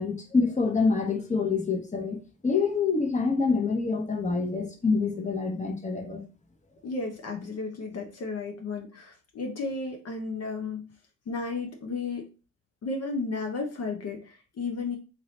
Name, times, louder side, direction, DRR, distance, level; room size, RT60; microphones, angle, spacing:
voice 1, 0.0-2.2 2.4-6.2, left 4 dB, 25° left, 1.1 m, -26 dB
voice 2, 6.8-10.9 11.3-12.3 12.8-15.0, left 3 dB, 60° left, 0.9 m, -33 dB
4.2 x 2.6 x 3.2 m
supercardioid pair, 65°, 29 cm